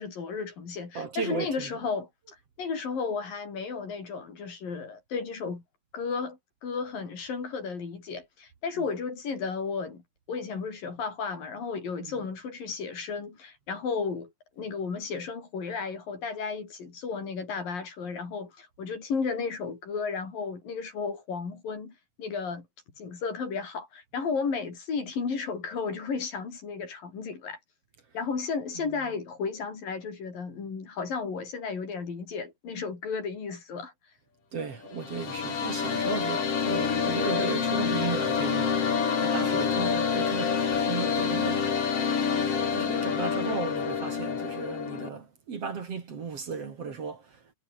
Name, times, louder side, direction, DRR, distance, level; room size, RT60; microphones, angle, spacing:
voice 1, 0.0-2.1 2.6-5.6 5.9-22.7 23.0-27.6 28.1-33.9, left 5 dB, 75° left, 6.9 m, -34 dB
voice 2, 0.9-1.7 8.8-8.9 12.0-12.1 34.5-38.8 39.2-41.8 42.7-47.5, right 5 dB, 45° right, 3.2 m, -35 dB
sound 1, 34.8-45.1, left 6 dB, 45° left, 3.5 m, -27 dB
omnidirectional pair, 4.0 m